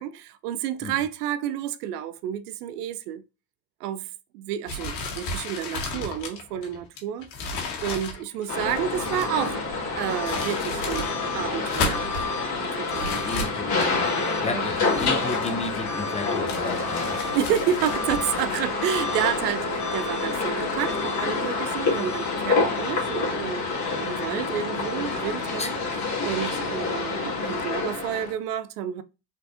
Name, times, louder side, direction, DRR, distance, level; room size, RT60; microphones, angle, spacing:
voice 1, 0.0-3.2 3.8-4.1 4.3-9.6 10.0-12.1 12.8-13.3 14.5-14.7 17.3-23.7 24.0-25.7 26.2-29.0, right 10 dB, 70° right, 0.6 m, -30 dB
sound 1, 4.7-9.4 10.0-11.2 11.5-12.3 12.9-14.1 14.7-16.0 16.5-18.4, left 3 dB, 85° left, 1.5 m, -34 dB
sound 2, 8.5-28.3, left 3 dB, 35° left, 2.1 m, -27 dB
voice 2, 13.0-14.1 14.4-17.2 25.6-25.8, left 2 dB, 15° left, 0.6 m, -33 dB
4.4 x 4.1 x 2.7 m
hypercardioid pair, 80°, 48 cm